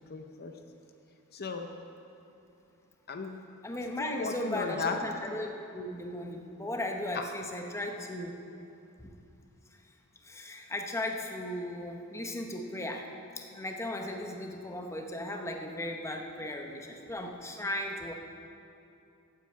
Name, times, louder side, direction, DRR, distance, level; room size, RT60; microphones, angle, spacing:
voice 1, 0.1-0.5 1.3-1.7 3.1-3.4 4.0-5.0 7.1-7.2, left 4 dB, 45° left, 5 dB, 0.7 m, -35 dB
voice 2, 3.6-8.4 9.0-9.1 9.7-9.8 10.2-13.1 13.4-18.1, left 1 dB, 15° left, 3 dB, 0.8 m, -36 dB
9.4 x 9.0 x 7.4 m, 2.7 s
head